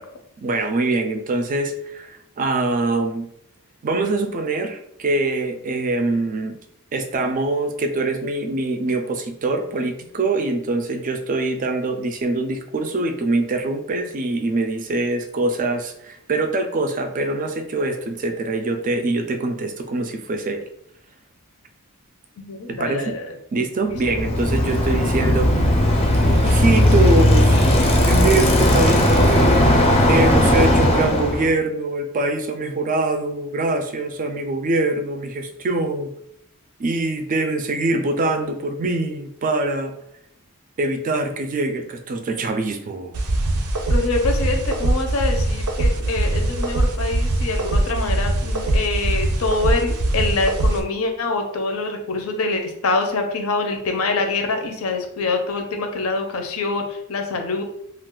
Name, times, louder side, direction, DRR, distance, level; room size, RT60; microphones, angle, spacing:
voice 1, 0.4-3.3 3.8-6.6 6.9-20.6 22.7-23.2 23.5-25.7 26.4-27.7 28.1-29.3 30.1-36.1 36.8-39.9 40.8-43.2, right 2 dB, 40° right, 6 dB, 0.4 m, -24 dB
voice 2, 22.4-23.3 43.9-57.6, left 3 dB, 70° left, 4 dB, 0.6 m, -25 dB
Bicycle, 24.0-31.5, left 1 dB, 25° left, 0.5 m, -16 dB
sound 1, 43.1-50.8, right 1 dB, 90° right, 0.5 m, -22 dB
2.3 x 2.3 x 3.7 m, 0.74 s
head